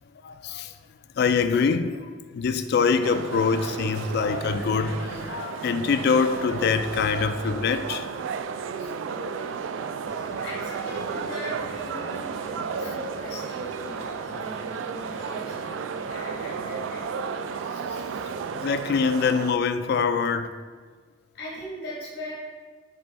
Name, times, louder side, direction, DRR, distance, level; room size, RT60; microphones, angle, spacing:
voice 1, 0.2-0.8 1.2-8.1 18.5-20.5, left 5 dB, 60° left, 10 dB, 0.3 m, -24 dB
sound 1, 3.0-19.5, right 6 dB, 80° right, 0.3 m, -33 dB
voice 2, 9.1-9.7 10.3-17.1 21.3-22.4, equal, 85° left, -6 dB, 1.3 m, -39 dB
sound 2, 10.0-18.6, equal, 15° left, 0.6 m, -48 dB
6.8 x 3.4 x 4.1 m, 1.5 s
head